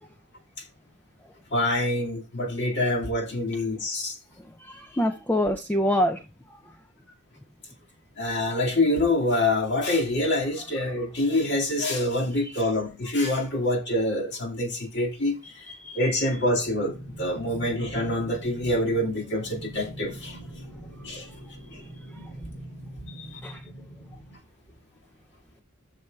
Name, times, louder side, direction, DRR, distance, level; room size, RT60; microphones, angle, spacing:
voice 1, 1.5-4.2 8.2-20.4 21.0-21.3 21.7-21.8 23.1-23.4, left 1 dB, 50° left, 1.9 m, -26 dB
voice 2, 4.6-6.2 15.7-16.0 22.1-22.3 23.4-23.6, equal, 10° left, 0.4 m, -26 dB
sound 1, 16.4-24.4, right 1 dB, 85° left, 5.6 m, -43 dB
12.5 x 6.8 x 2.3 m
head